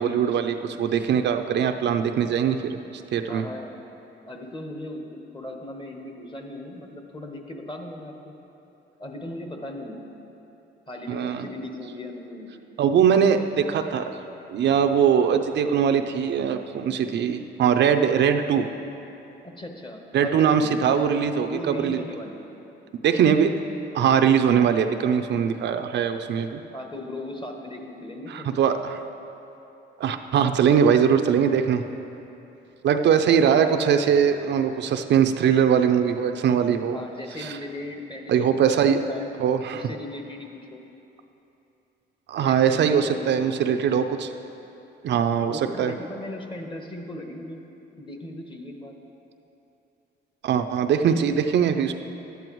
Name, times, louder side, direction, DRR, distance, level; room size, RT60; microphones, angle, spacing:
voice 1, 0.0-2.8 3.1-3.4 11.1-11.4 12.8-14.1 14.5-18.7 20.1-22.0 23.0-23.5 23.9-26.6 28.3-29.0 30.0-31.8 32.8-37.0 37.4-37.5 38.3-39.0 39.4-39.8 42.3-44.3 45.0-45.9 50.4-51.9, right 7 dB, 60° right, 7 dB, 0.5 m, -21 dB
voice 2, 3.3-3.7 4.3-8.4 9.0-10.1 10.9-12.6 19.4-20.9 21.4-22.5 26.7-28.5 36.9-39.3 39.7-40.8 42.4-43.4 45.5-47.6 48.0-49.0, left 1 dB, 25° left, 3 dB, 1.1 m, -37 dB
11.5 x 9.3 x 3.1 m, 2.9 s
cardioid pair, 90°, 20 cm